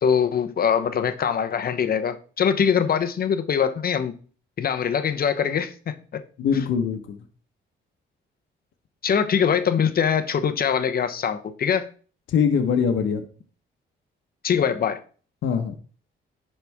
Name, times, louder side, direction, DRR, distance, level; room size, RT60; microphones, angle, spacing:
voice 1, 0.0-4.1 4.6-5.9 9.0-11.9 14.4-15.0, left 7 dB, 50° left, 0.9 m, -23 dB
voice 2, 6.4-7.2 12.3-13.2 15.4-15.8, left 7 dB, 75° left, 1.2 m, -22 dB
11.0 x 4.3 x 3.5 m
cardioid pair, 90°, 20 cm